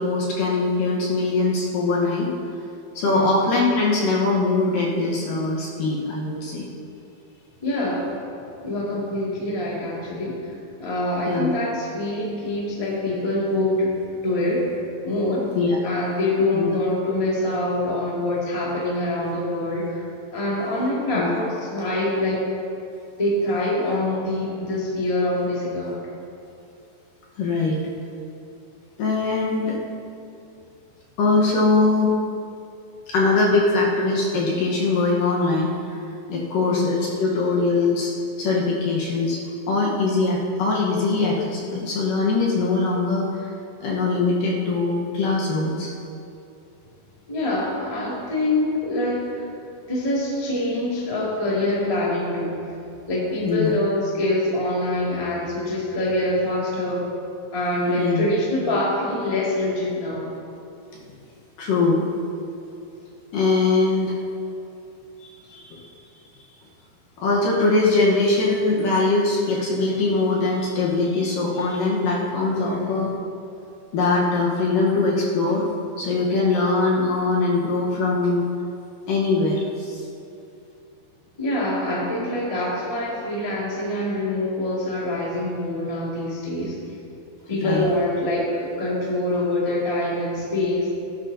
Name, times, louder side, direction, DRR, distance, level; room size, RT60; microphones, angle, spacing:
voice 1, 0.0-2.3 2.9-6.7 11.3-11.5 15.5-15.8 16.5-16.6 21.1-21.3 27.4-27.8 29.0-29.8 31.2-32.2 33.1-36.0 36.3-38.1 38.4-39.4 39.7-43.5 43.8-45.9 53.4-53.7 58.0-58.3 60.9-61.0 61.6-62.1 63.3-64.2 65.2-65.8 67.2-73.1 73.9-75.7 76.0-78.5 79.1-80.1 87.5-87.9, left 3 dB, 65° left, -3 dB, 2.4 m, -22 dB
voice 2, 3.0-3.4 7.6-8.1 8.6-10.5 10.8-13.9 14.2-14.7 15.0-15.5 15.8-20.0 20.3-22.5 23.2-26.0 36.6-37.0 47.3-49.5 49.9-52.5 53.1-57.0 57.5-60.3 72.6-73.0 81.4-86.7 87.5-90.9, left 1 dB, 25° left, -6 dB, 0.7 m, -25 dB
17.5 x 10.0 x 2.8 m, 2.6 s
omnidirectional pair, 4.9 m